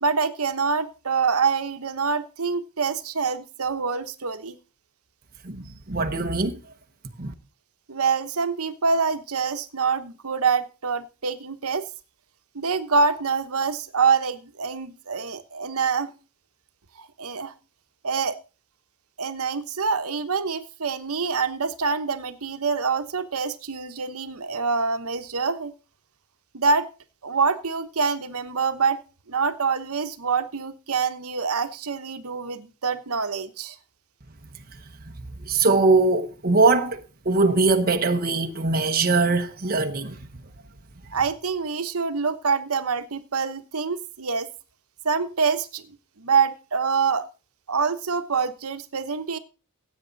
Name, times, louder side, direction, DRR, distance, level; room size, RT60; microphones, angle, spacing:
voice 1, 0.0-4.6 7.9-11.8 12.5-16.1 17.0-17.5 18.0-18.4 19.2-25.7 26.5-26.9 27.2-29.0 29.3-33.8 41.1-44.5 45.0-45.8 46.2-47.3 47.7-49.4, right 5 dB, 75° right, 1.1 m, -25 dB
voice 2, 5.4-6.6 7.2-7.3 35.4-40.2, right 3 dB, 40° right, 1.0 m, -21 dB
16.0 x 8.4 x 4.0 m
head